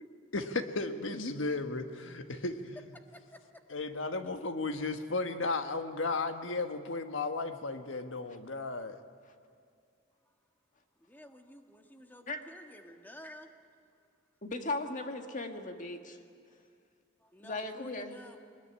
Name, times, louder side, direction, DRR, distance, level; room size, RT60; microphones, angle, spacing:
voice 1, 0.3-2.8 3.7-9.0, left 3 dB, 85° left, 8 dB, 1.4 m, -34 dB
voice 2, 3.1-3.6 10.2-10.3 11.0-13.5 17.2-18.4, equal, 10° left, 4 dB, 1.6 m, -52 dB
voice 3, 14.4-16.2 17.4-18.1, left 2 dB, 40° left, 5 dB, 1.8 m, -37 dB
22.0 x 20.0 x 10.0 m, 2.3 s
head